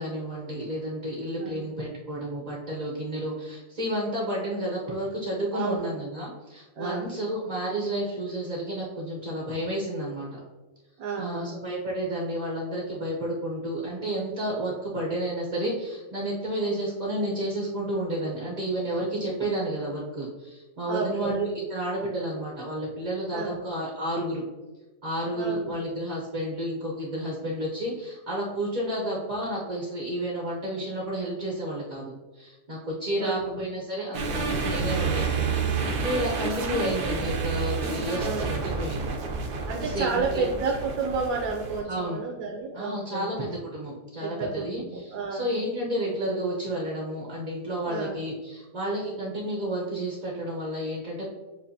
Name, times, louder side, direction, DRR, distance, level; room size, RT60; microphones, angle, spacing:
voice 1, 0.0-10.3 11.2-24.4 25.0-39.2 39.8-40.4 41.9-42.2 42.7-51.3, right 1 dB, 40° right, -4 dB, 0.6 m, -31 dB
voice 2, 5.5-5.9 6.8-7.1 11.0-11.6 20.9-21.4 23.3-23.6 25.3-25.8 33.2-33.6 38.2-38.6 39.6-43.3 44.2-45.6 47.9-48.2, right 4 dB, 70° right, 0 dB, 0.9 m, -31 dB
sound 1, 34.1-41.8, right 4 dB, 90° right, 1.4 m, -29 dB
7.2 x 2.5 x 2.7 m, 1.2 s
omnidirectional pair, 1.7 m